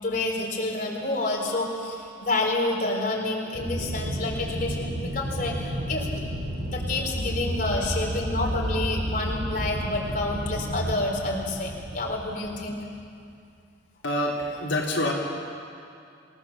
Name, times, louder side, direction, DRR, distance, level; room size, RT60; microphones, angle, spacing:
voice 1, 0.0-6.1 6.7-12.8, left 2 dB, 45° left, -1 dB, 3.9 m, -29 dB
Mallet percussion, 1.2-3.0, right 2 dB, 5° left, 5.9 m, -45 dB
Aircraft, 3.5-13.0, equal, 60° right, 2.9 m, -31 dB
voice 2, 14.0-15.1, left 1 dB, 75° left, -3 dB, 3.1 m, -26 dB
27.5 x 17.0 x 7.3 m, 2.5 s
head